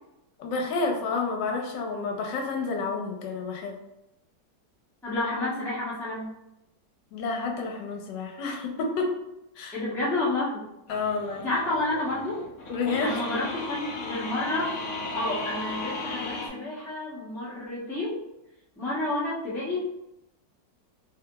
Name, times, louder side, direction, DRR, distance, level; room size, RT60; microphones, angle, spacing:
voice 1, 0.4-3.8 7.1-9.1 9.6-9.8 10.9-11.5 12.7-13.2, left 4 dB, 80° left, 2 dB, 1.2 m, -30 dB
voice 2, 5.0-6.3 9.7-10.6 11.4-12.4 13.0-14.7 15.1-18.2 18.8-19.8, left 2 dB, 5° left, -8 dB, 0.3 m, -30 dB
sound 1, 10.9-16.5, left 2 dB, 65° left, 0.8 m, -35 dB
3.3 x 2.8 x 2.3 m, 0.88 s
omnidirectional pair, 1.9 m